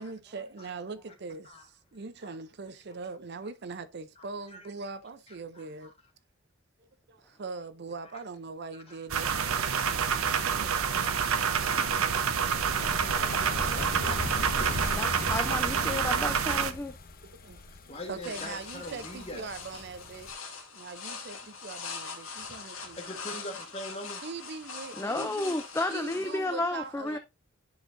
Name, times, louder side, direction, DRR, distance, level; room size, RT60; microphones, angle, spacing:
voice 1, 0.0-5.9 6.8-9.5 10.5-11.2 14.6-15.2 17.3-23.5 24.2-25.6 25.9-27.2, right 4 dB, 50° right, 0.5 m, -42 dB
voice 2, 8.7-9.5 17.7-19.5 23.0-24.2, left 1 dB, 30° left, 1.4 m, -43 dB
sound 1, 9.1-20.3, left 2 dB, 45° left, 0.8 m, -40 dB
sound 2, 9.1-16.7, right 7 dB, 90° right, 0.7 m, -28 dB
voice 3, 14.9-16.9 25.0-27.2, left 2 dB, 10° left, 0.4 m, -32 dB
sound 3, 18.2-26.4, left 5 dB, 80° left, 1.8 m, -42 dB
10.5 x 4.6 x 2.6 m
head